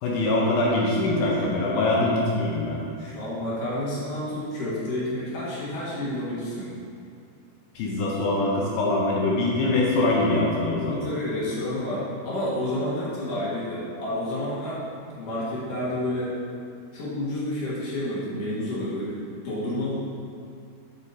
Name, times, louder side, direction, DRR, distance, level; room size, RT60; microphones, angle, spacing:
voice 1, 0.0-2.8 7.8-11.1, left 2 dB, 75° left, -3 dB, 2.5 m, -23 dB
voice 2, 1.6-2.0 3.0-6.7 10.8-14.8 15.2-16.4 16.9-19.1 19.4-19.9, left 1 dB, 60° left, -8 dB, 3.0 m, -30 dB
8.3 x 5.0 x 4.2 m, 2.3 s
omnidirectional pair, 4.5 m